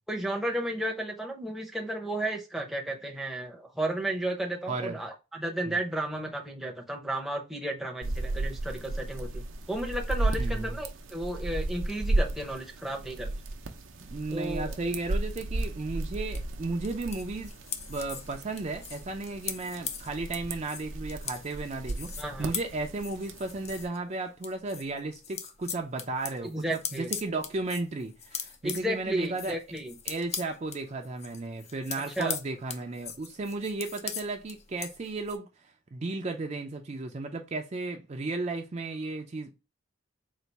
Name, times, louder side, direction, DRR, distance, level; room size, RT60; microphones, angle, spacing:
voice 1, 0.1-13.3 14.3-14.7 22.2-22.5 26.4-27.1 28.6-29.9 32.2-32.4, right 1 dB, ahead, 0.7 m, -33 dB
voice 2, 4.7-5.0 5.7-5.8 10.4-10.8 14.1-17.5 17.9-29.6 30.1-39.5, right 3 dB, 35° right, 0.4 m, -34 dB
sound 1, 8.0-23.8, right 2 dB, 85° right, 0.6 m, -34 dB
sound 2, 16.3-24.0 24.3-35.4, left 7 dB, 35° left, 0.5 m, -40 dB
4.0 x 2.5 x 4.5 m
head